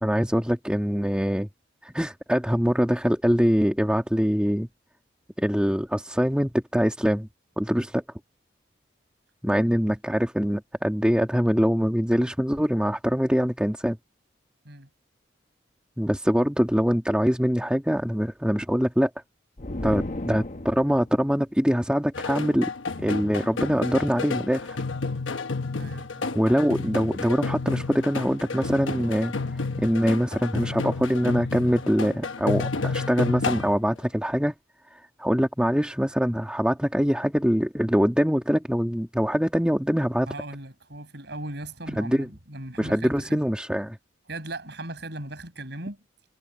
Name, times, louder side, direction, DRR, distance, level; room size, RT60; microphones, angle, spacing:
voice 1, 0.0-1.5 1.8-4.7 5.4-7.3 7.6-8.0 9.4-14.0 16.0-19.1 19.8-22.7 23.0-24.8 26.3-29.3 29.8-34.5 34.9-40.3 41.9-42.3 42.8-44.0, equal, 5° right, 1.9 m, -23 dB
sound 1, 19.6-21.1, left 1 dB, 40° left, 1.1 m, -33 dB
sound 2, 22.1-33.8, left 3 dB, 85° left, 1.1 m, -31 dB
voice 2, 25.8-26.4 40.2-43.4 44.3-46.0, right 1 dB, 60° right, 7.3 m, -38 dB
head